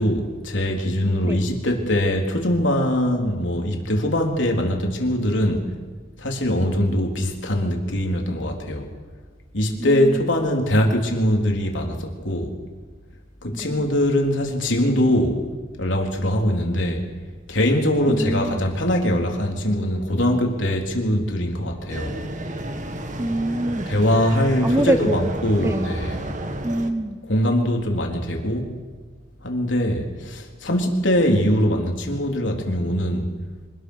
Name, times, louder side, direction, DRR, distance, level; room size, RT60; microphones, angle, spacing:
voice 1, 0.0-5.7 6.2-8.9 9.5-12.5 13.4-15.4 15.8-17.0 17.5-22.1 23.9-26.2 27.3-28.7 29.4-33.3, left 1 dB, 70° left, 1 dB, 3.8 m, -22 dB
voice 2, 9.8-10.2 13.5-13.7 18.1-18.6 23.2-23.9 24.6-25.3 25.6-25.9 26.6-27.2, right 1 dB, 15° right, 11 dB, 0.8 m, -24 dB
sound 1, 21.9-26.9, right 1 dB, 40° right, 1.7 m, -32 dB
25.5 x 20.0 x 6.5 m, 1.4 s
head